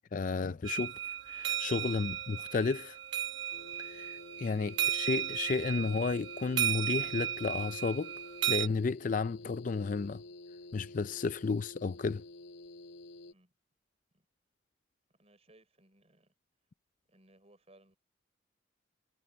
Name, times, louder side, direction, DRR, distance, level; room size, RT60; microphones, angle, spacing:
voice 1, 0.1-0.9 1.3-3.0 3.8-8.1 8.5-10.2 10.7-12.2, left 4 dB, 40° left, 0.4 m, -32 dB
sound 1, 0.6-8.7, right 11 dB, 65° right, 1.0 m, -35 dB
sound 2, 3.5-13.3, left 2 dB, 75° left, 4.8 m, -50 dB
voice 2, 15.1-16.3 17.1-18.0, right 1 dB, 30° right, 6.3 m, -64 dB
head